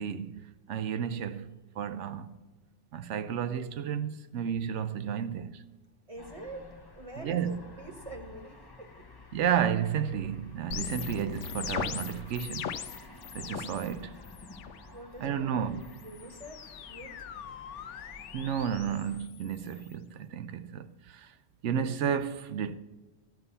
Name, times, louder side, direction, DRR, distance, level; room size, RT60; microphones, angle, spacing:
voice 1, 0.0-2.4 2.9-5.6 7.2-7.6 9.3-12.8 13.3-14.2 15.2-15.8 18.3-21.3 21.6-22.7, right 8 dB, 80° right, 0.9 m, -32 dB
voice 2, 6.1-6.7 6.9-9.0 14.9-15.8 16.0-18.1, right 1 dB, 30° right, 1.3 m, -46 dB
sound 1, 6.2-19.2, left 3 dB, 25° left, 0.7 m, -51 dB
sound 2, 10.7-13.9 14.2-14.8 15.8-19.9, left 8 dB, 80° left, 1.0 m, -40 dB
12.0 x 5.7 x 6.7 m
omnidirectional pair, 1.2 m